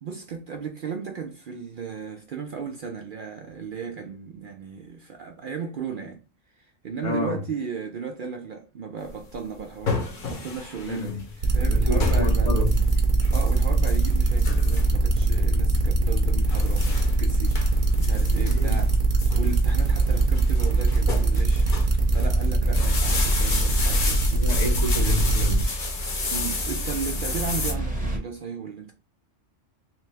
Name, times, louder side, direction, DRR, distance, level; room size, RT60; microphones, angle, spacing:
voice 1, 0.0-6.2 6.6-12.5 13.3-17.6 18.0-18.9 19.3-21.7 22.1-24.2 26.3-28.9, right 5 dB, 60° right, 0.5 m, -35 dB
voice 2, 7.0-7.4 10.8-11.2 11.6-12.9 18.4-18.8 24.3-25.7, left 3 dB, 80° left, 1.7 m, -30 dB
sound 1, 9.1-27.7, left 3 dB, 50° left, 0.9 m, -32 dB
sound 2, 11.4-25.6, right 2 dB, 45° right, 0.9 m, -22 dB
sound 3, 11.5-28.2, right 1 dB, 10° right, 0.8 m, -38 dB
3.2 x 3.2 x 3.3 m
omnidirectional pair, 1.3 m